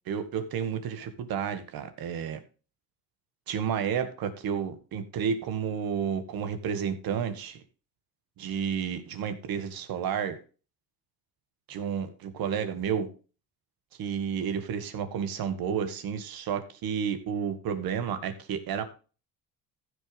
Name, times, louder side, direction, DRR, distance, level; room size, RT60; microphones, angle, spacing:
voice 1, 0.1-2.4 3.5-7.6 8.4-10.4 11.7-13.1 14.0-18.8, right 7 dB, 60° right, 9 dB, 2.0 m, -31 dB
15.0 x 6.6 x 3.5 m, 0.35 s
cardioid pair, 130°, 39 cm